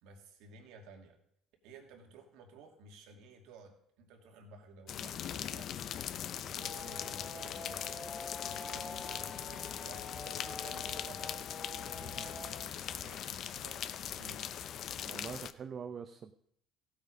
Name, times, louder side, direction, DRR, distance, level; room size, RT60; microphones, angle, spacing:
voice 1, 0.0-1.2 1.6-6.0 6.4-7.9 8.4-11.4 11.9-12.4 12.9-14.5, right 2 dB, 80° right, 3 dB, 2.6 m, -54 dB
sound 1, 4.9-15.5, left 9 dB, 55° left, 0.6 m, -41 dB
sound 2, 6.3-7.6 8.5-9.0 10.2-11.5, left 5 dB, 70° left, 2.4 m, -55 dB
sound 3, 6.6-12.6, left 3 dB, 15° left, 3.1 m, -46 dB
voice 2, 15.0-16.3, right 6 dB, 40° right, 7 dB, 0.7 m, -44 dB
15.5 x 8.2 x 5.2 m, 0.68 s
cardioid pair, 115°, 0 cm